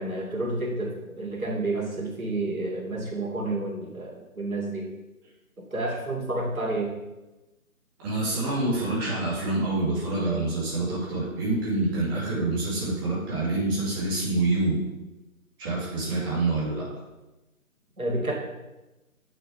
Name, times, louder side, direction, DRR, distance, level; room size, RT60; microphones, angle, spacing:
voice 1, 0.0-4.9 5.7-7.0 18.0-18.3, right 2 dB, 75° right, -2 dB, 3.2 m, -30 dB
voice 2, 8.0-14.8 15.6-16.8, right 2 dB, 15° right, -7 dB, 2.3 m, -26 dB
8.7 x 6.6 x 5.9 m, 1.0 s
figure-of-eight pair, 150°, 42 cm